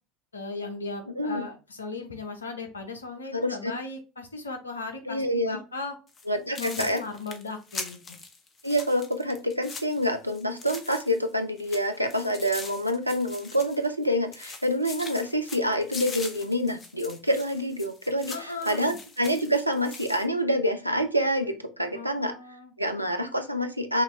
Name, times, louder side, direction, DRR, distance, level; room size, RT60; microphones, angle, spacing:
voice 1, 0.3-5.9 6.6-8.2 18.3-19.0 21.9-22.7, left 3 dB, 75° left, 6 dB, 0.8 m, -37 dB
voice 2, 3.3-3.7 5.1-5.6 6.3-7.0 8.6-22.3 22.8-24.0, equal, 90° right, 6 dB, 0.5 m, -27 dB
sound 1, 6.1-6.3 6.6-11.3 11.6-14.1 14.3-20.3, left 3 dB, 30° left, 0.9 m, -42 dB
5.6 x 2.6 x 3.1 m, 0.33 s
figure-of-eight pair, 70°, 0 cm